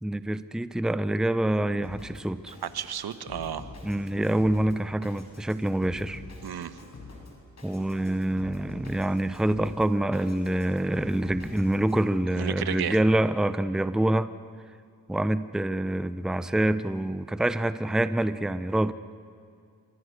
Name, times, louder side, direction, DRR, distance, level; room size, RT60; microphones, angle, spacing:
voice 1, 0.0-2.5 3.8-6.2 7.6-14.3 15.1-18.9, right 1 dB, ahead, 13 dB, 0.7 m, -26 dB
Drum kit, 1.8-12.0, left 3 dB, 45° left, 6.4 m, -46 dB
voice 2, 2.6-3.7 6.4-6.8 12.4-13.0, right 9 dB, 75° right, 11 dB, 1.3 m, -32 dB
28.5 x 25.5 x 6.6 m, 2.3 s
cardioid pair, 95°, 38 cm